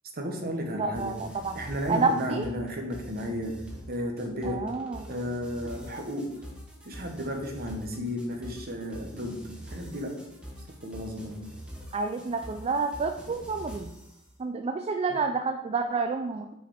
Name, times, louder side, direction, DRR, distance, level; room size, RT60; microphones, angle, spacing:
voice 1, 0.2-1.1 1.5-3.6 3.9-4.7 5.1-6.3 6.8-9.4 9.7-10.2 10.8-11.4 15.1-15.2, equal, 45° right, 3 dB, 1.2 m, -33 dB
voice 2, 0.7-1.6 1.9-2.5 4.4-5.1 11.9-13.9 14.4-16.5, right 4 dB, 30° right, 6 dB, 0.3 m, -29 dB
sound 1, 0.9-14.2, equal, 5° right, 1.1 m, -45 dB
5.9 x 4.9 x 5.0 m, 0.87 s
head